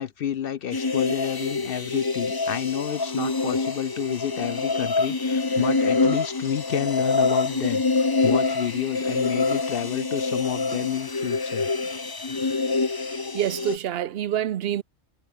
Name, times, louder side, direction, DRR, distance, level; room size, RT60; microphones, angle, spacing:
voice 1, 0.0-11.7 12.2-12.6, left 9 dB, 60° left, 0.6 m, -29 dB
sound 1, 0.7-13.8, left 3 dB, 20° left, 0.7 m, -26 dB
voice 2, 13.0-14.8, right 11 dB, 60° right, 0.7 m, -27 dB
omnidirectional pair, 1.4 m